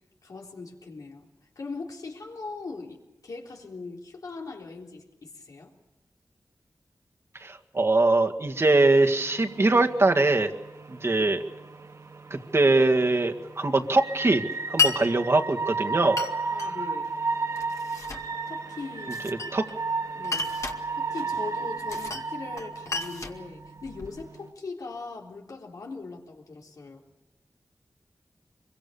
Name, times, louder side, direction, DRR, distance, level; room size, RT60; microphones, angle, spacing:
voice 1, 0.2-1.3 1.6-5.7 16.5-17.2 18.5-19.5 20.1-20.5 20.9-27.0, left 3 dB, 90° left, 0 dB, 3.7 m, -40 dB
voice 2, 7.4-10.5 10.9-11.4 12.3-14.4 14.7-16.2 19.5-19.6, right 2 dB, 45° right, 4 dB, 1.9 m, -22 dB
sound 1, 8.6-24.5, right 4 dB, 65° right, 1.9 m, -34 dB
Glass, 14.8-15.0 16.2-16.7 17.6-18.3 19.1-19.8 20.2-20.8 21.9-22.3 22.6-24.2, left 5 dB, 60° left, 2.1 m, -30 dB
25.0 x 23.0 x 7.0 m, 0.98 s
wide cardioid pair, 65°, 6 cm